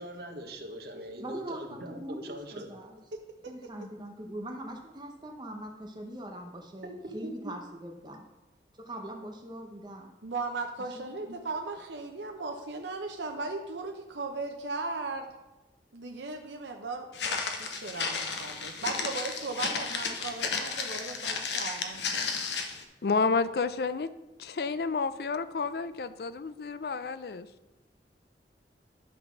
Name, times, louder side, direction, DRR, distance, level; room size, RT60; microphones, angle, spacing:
voice 1, 0.0-2.7 7.2-7.3, right 1 dB, 60° right, 3 dB, 1.3 m, -42 dB
voice 2, 1.2-3.0 3.5-8.2 8.8-10.1 10.9-11.1, right 1 dB, 25° right, 2 dB, 0.8 m, -41 dB
voice 3, 10.2-15.3 15.9-17.1 17.5-22.2, right 3 dB, 85° right, 3 dB, 0.8 m, -37 dB
Walk footsteps, 17.1-22.8, left 5 dB, 80° left, 1.0 m, -33 dB
voice 4, 23.0-24.1 24.4-27.5, left 4 dB, 60° left, 13 dB, 0.4 m, -30 dB
11.5 x 4.0 x 6.1 m, 1.1 s
head